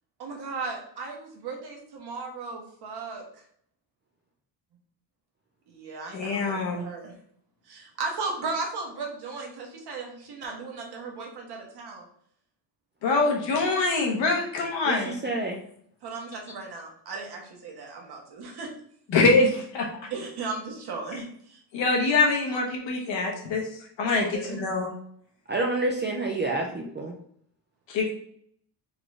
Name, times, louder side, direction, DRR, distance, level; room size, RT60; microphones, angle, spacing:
voice 1, 0.2-3.2 5.7-7.1 7.7-12.1 16.0-18.7 20.1-21.6 24.1-24.6, right 4 dB, 60° right, 1 dB, 1.1 m, -36 dB
voice 2, 6.1-6.8 13.0-15.1 19.1-19.9 21.7-23.6 24.0-24.9 27.9-28.1, left 3 dB, 80° left, 0 dB, 1.3 m, -24 dB
voice 3, 14.8-15.6 25.5-27.1, right 2 dB, 25° right, 0 dB, 0.3 m, -28 dB
3.9 x 3.6 x 3.3 m, 0.65 s
cardioid pair, 170°, 45 cm